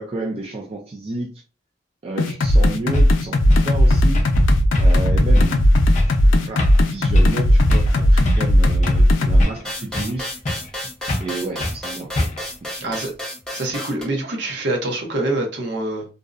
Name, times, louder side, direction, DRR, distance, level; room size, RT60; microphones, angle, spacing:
voice 1, 0.0-1.4 2.0-4.3 4.8-6.0 6.3-10.4 11.2-12.1 12.7-13.0, right 2 dB, 30° right, 0.4 m, -31 dB
sound 1, 2.2-9.4, left 1 dB, 85° left, 0.4 m, -15 dB
sound 2, 2.5-2.6 2.9-3.1 3.5-3.7 4.1-4.4 4.7-5.1 5.3-5.6 5.9-6.2 6.6-6.9 7.1-7.4 7.7-7.9 8.2-9.1 9.4-10.2 10.4-10.8 11.1-11.3 11.6-11.8 12.2-12.5, left 1 dB, 40° left, 0.5 m, -27 dB
sound 3, 9.6-14.0, left 1 dB, 5° left, 0.8 m, -32 dB
voice 2, 12.8-13.1 13.5-16.1, right 2 dB, 65° right, 0.7 m, -25 dB
2.6 x 2.0 x 2.4 m
head